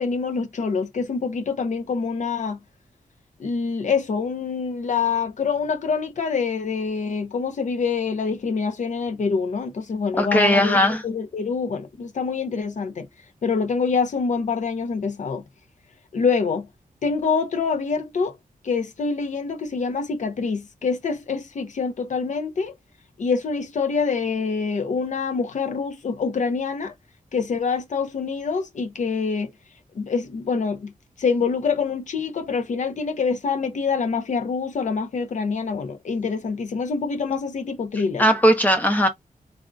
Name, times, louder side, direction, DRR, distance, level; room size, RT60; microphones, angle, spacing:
voice 1, 0.0-2.6 3.4-13.1 13.4-15.4 16.1-16.7 17.0-18.4 18.6-22.7 23.2-26.9 27.3-29.5 29.9-30.9 31.2-38.2, left 5 dB, 60° left, 0.7 m, -25 dB
voice 2, 10.2-11.0 38.2-39.1, equal, 10° left, 0.7 m, -18 dB
3.5 x 2.5 x 2.3 m
wide cardioid pair, 145°, 15 cm